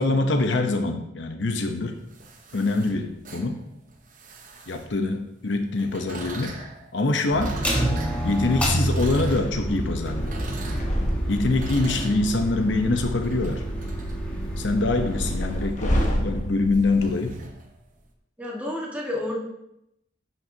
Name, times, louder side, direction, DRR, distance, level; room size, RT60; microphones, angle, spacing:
voice 1, 0.0-2.0 2.5-3.6 4.7-6.6 6.9-7.5 8.2-10.5 11.3-13.6 14.6-17.4, left 2 dB, 75° left, 6 dB, 0.8 m, -24 dB
sound 1, 1.7-5.2 5.8-18.1, right 2 dB, 45° right, 0.9 m, -41 dB
sound 2, 7.3-15.4, right 1 dB, 5° left, 1.2 m, -29 dB
sound 3, 8.6-17.1, equal, 40° left, 1.2 m, -30 dB
voice 2, 18.4-19.4, left 1 dB, 10° right, -4 dB, 1.6 m, -30 dB
11.0 x 6.0 x 2.8 m, 0.82 s
head